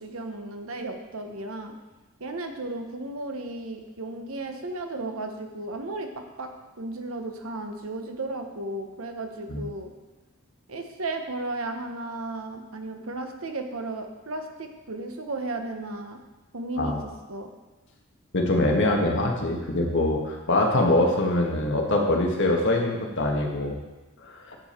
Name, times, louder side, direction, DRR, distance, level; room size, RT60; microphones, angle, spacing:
voice 1, 0.0-1.7 2.2-6.5 6.8-9.9 10.7-16.2 16.5-17.0 17.3-17.5, right 2 dB, 75° right, 5 dB, 1.1 m, -34 dB
voice 2, 18.3-23.8 24.2-24.6, left 1 dB, 60° left, 0 dB, 1.6 m, -24 dB
11.0 x 7.0 x 4.4 m, 1.1 s
head